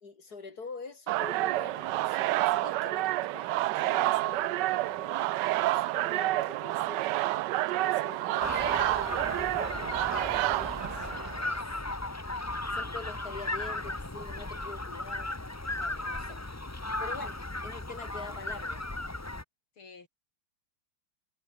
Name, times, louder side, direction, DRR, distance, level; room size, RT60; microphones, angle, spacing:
voice 1, 0.0-7.1 7.5-11.1 11.4-11.6 12.7-15.3 15.8-16.4 17.0-18.8, left 4 dB, 45° left, 4.0 m, -45 dB
sound 1, 1.1-11.5, right 16 dB, 75° right, 1.0 m, -29 dB
sound 2, 8.4-19.4, left 2 dB, 15° left, 0.5 m, -36 dB
voice 2, 19.8-20.1, left 4 dB, 80° left, 4.6 m, -53 dB
omnidirectional pair, 2.3 m